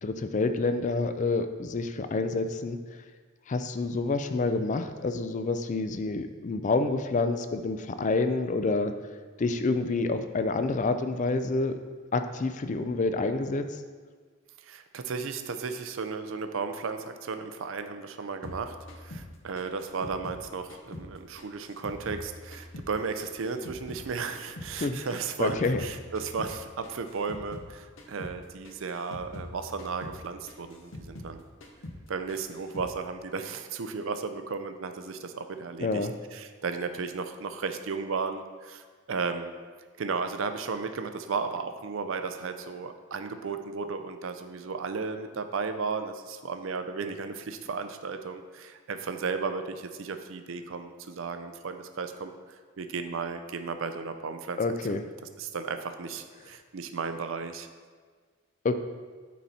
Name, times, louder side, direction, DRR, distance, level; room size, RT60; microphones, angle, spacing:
voice 1, 0.0-2.8 3.5-8.9 9.4-11.8 12.1-13.8 24.7-25.0 25.4-25.8 35.8-36.1 54.6-55.0 58.6-58.7, left 3 dB, 35° left, 9 dB, 0.4 m, -28 dB
voice 2, 14.6-31.4 32.1-39.5 40.0-52.3 52.8-54.6 54.9-55.1 55.4-57.7, right 4 dB, 65° right, 8 dB, 0.5 m, -34 dB
sound 1, 18.4-21.1 21.4-24.1 24.3-27.7 28.0-28.4 28.6-31.4 31.6-32.0 32.3-32.9, left 1 dB, 60° left, 0.9 m, -44 dB
9.2 x 4.2 x 4.1 m, 1.5 s
head